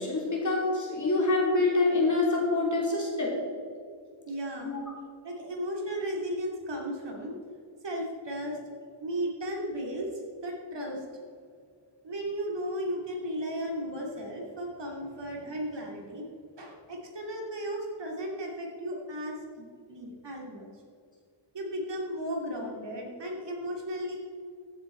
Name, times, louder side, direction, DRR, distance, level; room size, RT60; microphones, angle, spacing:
voice 1, 0.0-3.4 4.6-4.8 23.6-23.7, left 2 dB, 35° left, -2 dB, 3.1 m, -26 dB
voice 2, 4.3-4.7 5.2-7.4 7.8-8.6 9.0-10.1 10.4-11.0 12.0-16.3 16.6-20.7 21.5-24.2, equal, 60° right, -1 dB, 2.6 m, -35 dB
15.0 x 7.8 x 4.4 m, 2.2 s
wide cardioid pair, 115°, 48 cm